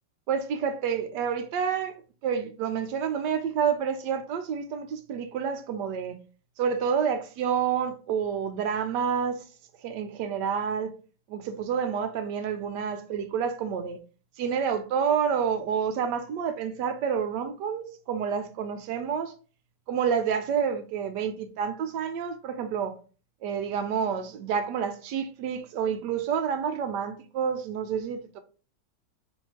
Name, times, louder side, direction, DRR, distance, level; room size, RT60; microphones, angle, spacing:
voice 1, 0.3-6.2 6.6-9.4 9.8-10.9 11.3-14.0 14.4-19.3 19.9-23.0 23.4-28.4, right 7 dB, 75° right, 1.2 m, -29 dB
4.4 x 3.2 x 2.9 m
omnidirectional pair, 1.9 m